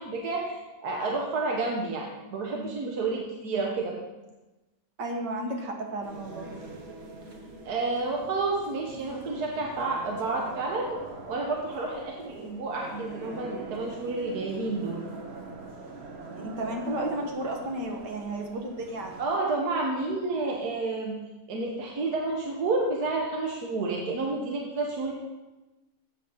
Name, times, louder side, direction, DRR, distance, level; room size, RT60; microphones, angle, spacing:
voice 1, 0.0-3.9 7.6-11.0 11.3-15.0 19.2-21.2 21.5-25.1, right 3 dB, 70° right, -1 dB, 1.7 m, -30 dB
voice 2, 5.0-6.6 16.3-19.2, right 1 dB, 85° right, 2 dB, 2.1 m, -33 dB
sound 1, 6.0-19.2, right 3 dB, 45° right, 1.2 m, -43 dB
13.0 x 8.4 x 3.9 m, 1.1 s
omnidirectional pair, 1.8 m